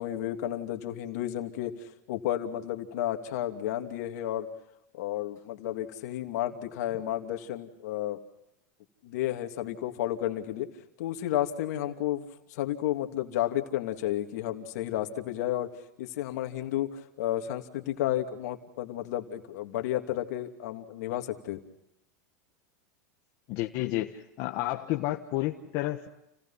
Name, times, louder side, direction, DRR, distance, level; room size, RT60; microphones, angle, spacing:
voice 1, 0.0-4.5 4.9-8.2 9.0-10.7 11.0-21.6, left 12 dB, 70° left, 5 dB, 2.8 m, -32 dB
voice 2, 23.5-26.1, left 16 dB, 50° left, 2 dB, 1.5 m, -31 dB
30.0 x 18.5 x 5.8 m, 0.85 s
supercardioid pair, 135°, 9 cm